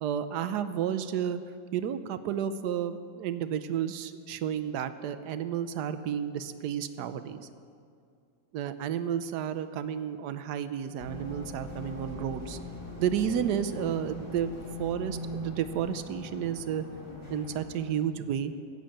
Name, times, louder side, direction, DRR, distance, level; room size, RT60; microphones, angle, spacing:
voice 1, 0.0-1.4 1.7-7.5 8.5-12.6 13.0-14.5 14.8-16.8 17.3-18.5, right 9 dB, 70° right, 11 dB, 1.1 m, -31 dB
sound 1, 11.0-18.0, left 1 dB, 15° left, 2.9 m, -41 dB
14.5 x 7.7 x 8.7 m, 2.3 s
omnidirectional pair, 2.1 m